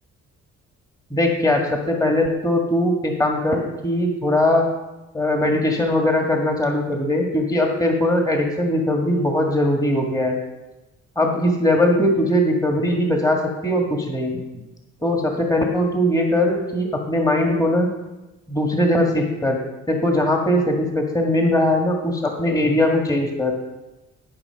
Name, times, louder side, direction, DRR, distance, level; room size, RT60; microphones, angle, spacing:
voice 1, 1.1-4.7 5.1-10.4 11.2-14.6 15.0-17.9 18.5-23.6, left 1 dB, 10° left, 1 dB, 1.9 m, -20 dB
13.5 x 5.9 x 5.9 m, 1.0 s
cardioid pair, 90°, 30 cm